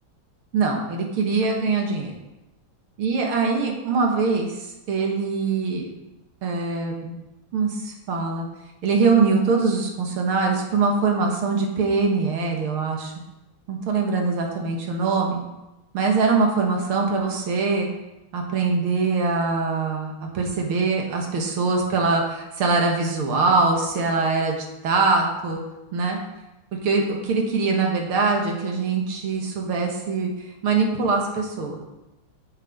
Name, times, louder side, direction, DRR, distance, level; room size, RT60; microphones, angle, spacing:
voice 1, 0.5-2.1 3.0-4.6 4.9-5.9 6.4-7.2 7.5-8.5 8.8-13.1 13.7-15.4 15.9-17.9 18.3-24.6 24.8-25.6 25.9-26.2 26.8-30.3 30.6-31.8, right 4 dB, 85° right, 1 dB, 2.3 m, -23 dB
8.5 x 6.5 x 5.3 m, 0.98 s
omnidirectional pair, 2.3 m